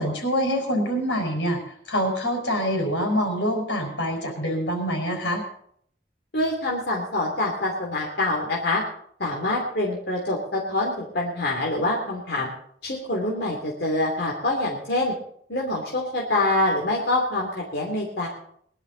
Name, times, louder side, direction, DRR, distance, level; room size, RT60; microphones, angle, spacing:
voice 1, 0.0-5.4, equal, 90° left, 2 dB, 5.3 m, -25 dB
voice 2, 6.3-8.8 9.2-12.5 12.8-15.1 15.5-18.3, left 2 dB, 60° left, -2 dB, 3.1 m, -25 dB
21.0 x 12.0 x 4.1 m, 0.65 s
head